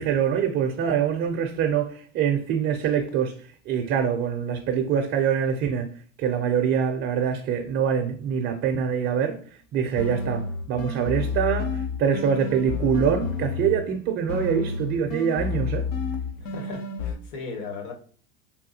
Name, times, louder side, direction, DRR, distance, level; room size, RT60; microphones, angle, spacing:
voice 1, 0.0-5.9 6.2-9.4 9.7-15.9, right 7 dB, 35° right, 0.4 m, -24 dB
sound 1, 10.0-13.9 14.3-17.1, left 4 dB, 80° left, 0.8 m, -30 dB
voice 2, 16.4-17.9, left 4 dB, 55° left, 1.1 m, -37 dB
3.5 x 2.3 x 2.7 m
hypercardioid pair, 110°, 39 cm